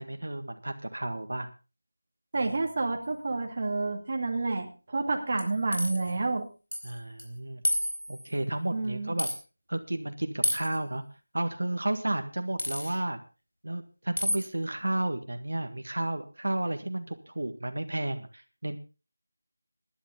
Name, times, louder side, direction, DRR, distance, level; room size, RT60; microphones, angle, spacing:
voice 1, 0.0-1.5 6.8-7.6 8.1-9.3 9.7-11.0 11.3-13.2 13.6-18.8, right 1 dB, 80° right, 7 dB, 1.8 m, -32 dB
voice 2, 2.3-6.5 8.7-9.2, right 3 dB, 35° right, 3 dB, 2.3 m, -29 dB
sound 1, 5.4-6.1 6.7-6.9 7.2-7.3 7.6-8.3 9.2-9.4 10.4-10.8 12.6-12.9 14.2-14.5, left 1 dB, 70° left, 4.1 m, -30 dB
18.5 x 11.0 x 3.8 m, 0.32 s
figure-of-eight pair, 175°, 0 cm